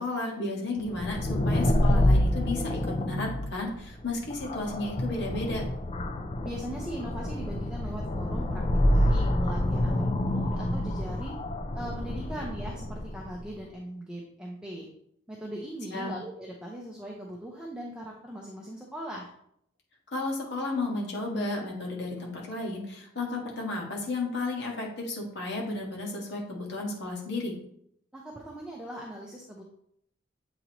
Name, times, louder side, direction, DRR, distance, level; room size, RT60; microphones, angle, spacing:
voice 1, 0.0-5.6 15.9-16.1 20.1-27.5, left 2 dB, 60° left, -1 dB, 1.6 m, -33 dB
sound 1, 0.8-13.4, left 1 dB, 30° left, 0.4 m, -27 dB
voice 2, 6.4-11.4 11.7-14.9 15.3-19.3 28.1-29.6, right 1 dB, 5° right, -3 dB, 0.7 m, -40 dB
7.8 x 4.0 x 3.0 m, 0.71 s
head